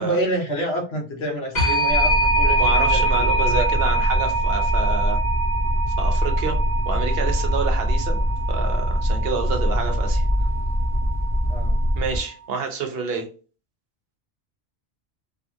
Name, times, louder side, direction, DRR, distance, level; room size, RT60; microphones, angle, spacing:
voice 1, 0.0-3.7 11.5-11.7, right 1 dB, 70° left, 1 dB, 1.1 m, -28 dB
sound 1, 1.6-12.2, right 2 dB, 45° left, 1.2 m, -25 dB
sound 2, 1.9-12.2, equal, 10° right, 0.7 m, -23 dB
voice 2, 2.5-5.2 6.0-6.6 6.9-8.2 8.5-10.3 12.0-13.3, right 5 dB, 70° right, 4 dB, 0.9 m, -28 dB
2.8 x 2.4 x 2.6 m, 0.36 s
omnidirectional pair, 1.1 m